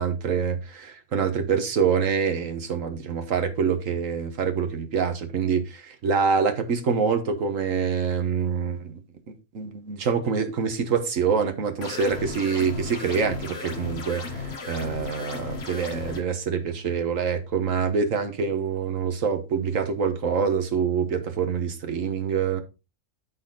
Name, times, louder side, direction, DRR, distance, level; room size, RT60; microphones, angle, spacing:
voice 1, 0.0-9.0 9.5-22.6, right 6 dB, 70° right, 1.6 m, -25 dB
sound 1, 11.8-16.2, left 4 dB, 50° left, 1.5 m, -35 dB
13.0 x 4.3 x 3.9 m
omnidirectional pair, 1.4 m